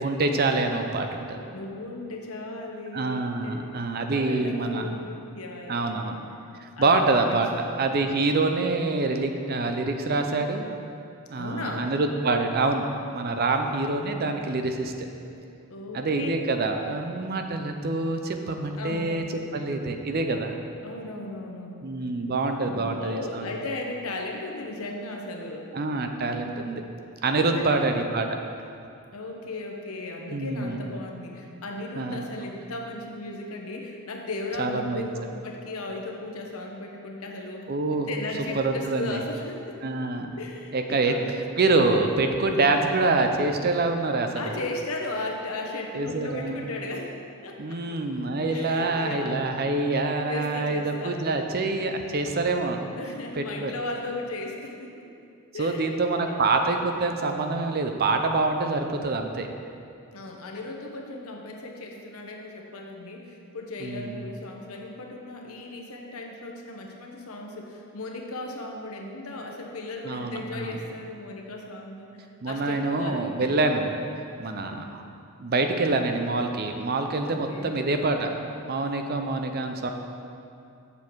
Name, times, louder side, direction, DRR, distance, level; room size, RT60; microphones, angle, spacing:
voice 1, 0.0-1.4 2.9-4.9 5.7-6.2 6.6-7.5 7.8-10.7 11.3-12.9 13.1-15.1 15.9-19.2 19.5-20.6 21.8-23.5 25.7-26.8 27.2-28.3 30.3-30.9 32.0-32.2 34.6-35.1 37.7-38.1 38.5-39.2 39.8-40.4 40.7-41.1 41.6-44.5 45.9-46.7 47.6-52.8 53.4-53.7 55.6-59.5 63.8-64.2 70.0-70.8 72.4-73.9 74.4-75.0 75.4-79.9, right 3 dB, 45° right, 5 dB, 0.6 m, -26 dB
voice 2, 1.5-3.7 4.1-6.1 6.8-7.8 11.4-11.9 15.7-16.3 18.8-19.2 20.8-21.9 22.6-25.7 27.5-27.9 29.1-37.6 38.0-39.8 40.4-41.4 44.3-47.1 47.4-48.0 48.5-49.6 50.3-51.2 52.5-52.7 53.0-55.0 55.5-56.4 60.1-73.4 74.5-74.9 77.3-77.8, left 2 dB, 75° left, 1 dB, 1.0 m, -36 dB
7.5 x 6.9 x 4.7 m, 2.5 s
head